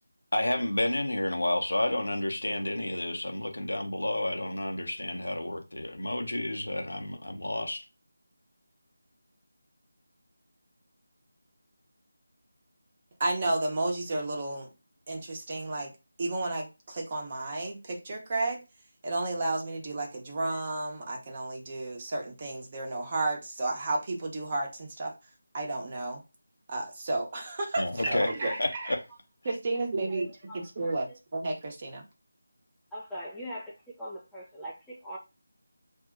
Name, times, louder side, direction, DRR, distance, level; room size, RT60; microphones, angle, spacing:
voice 1, 0.3-7.8 27.8-28.3 28.6-28.7, left 1 dB, 70° left, 0.9 m, -30 dB
voice 2, 13.2-14.7 15.1-15.9 16.2-18.6 19.0-25.1 25.5-26.2 26.7-28.9 29.4-30.3 30.5-32.0, right 2 dB, 30° right, 1.0 m, -32 dB
voice 3, 28.2-28.7 30.1-31.2 32.9-35.2, equal, ahead, 0.5 m, -42 dB
2.6 x 2.3 x 3.8 m
figure-of-eight pair, 160°, 0 cm